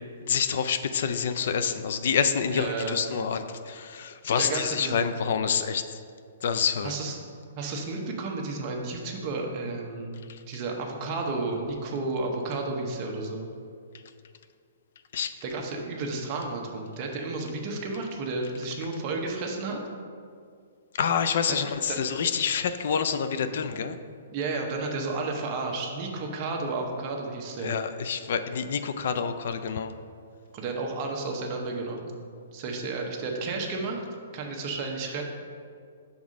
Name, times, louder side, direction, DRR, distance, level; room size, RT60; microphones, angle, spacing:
voice 1, 0.2-6.0 6.4-6.9 10.3-10.4 15.1-15.3 20.9-24.0 27.6-29.9, left 7 dB, 60° left, 10 dB, 0.3 m, -27 dB
voice 2, 2.5-3.0 4.4-5.2 6.8-7.2 7.5-10.2 10.5-13.5 15.4-19.8 21.6-22.0 24.3-27.8 30.5-32.1 32.5-34.0 34.3-35.2, right 3 dB, 30° right, 1 dB, 0.8 m, -32 dB
6.0 x 3.6 x 5.1 m, 2.3 s
hypercardioid pair, 160°, 0 cm